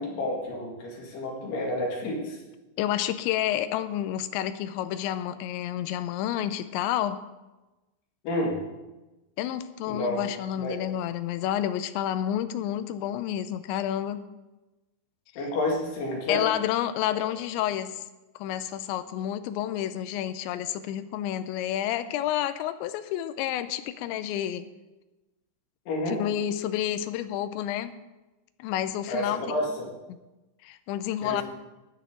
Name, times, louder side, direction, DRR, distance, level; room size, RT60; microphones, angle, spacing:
voice 1, 0.0-2.4 8.2-8.6 9.9-10.3 10.6-10.8 15.4-16.4 17.1-17.2 25.9-26.2 29.1-29.9 31.2-31.4, left 1 dB, 60° left, -1 dB, 4.0 m, -30 dB
voice 2, 2.8-7.2 9.4-14.2 16.3-18.0 18.4-24.7 26.1-27.9 28.6-29.4 30.6-31.4, left 11 dB, 80° left, 11 dB, 2.8 m, -29 dB
16.0 x 10.5 x 3.7 m, 1.1 s
omnidirectional pair, 5.5 m